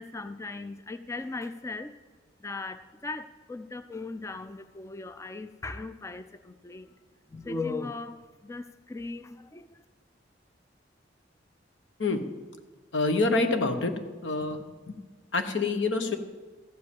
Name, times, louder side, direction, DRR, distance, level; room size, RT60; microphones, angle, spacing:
voice 1, 0.0-1.9 2.4-6.9 7.3-9.8, left 3 dB, 15° left, 0.3 m, -38 dB
voice 2, 12.9-13.9 14.2-14.6 14.9-15.0 15.3-16.2, left 3 dB, 85° left, 1.0 m, -26 dB
14.0 x 5.2 x 8.3 m
head